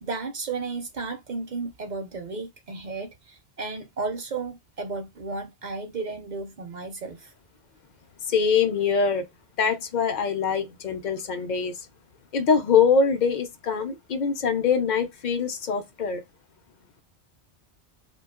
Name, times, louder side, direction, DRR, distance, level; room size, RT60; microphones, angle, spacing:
voice 1, 0.0-7.3, right 4 dB, 55° right, 0.6 m, -33 dB
voice 2, 8.3-9.3 9.6-11.9 12.3-16.2, left 6 dB, 55° left, 0.6 m, -23 dB
2.7 x 2.2 x 3.5 m
omnidirectional pair, 1.1 m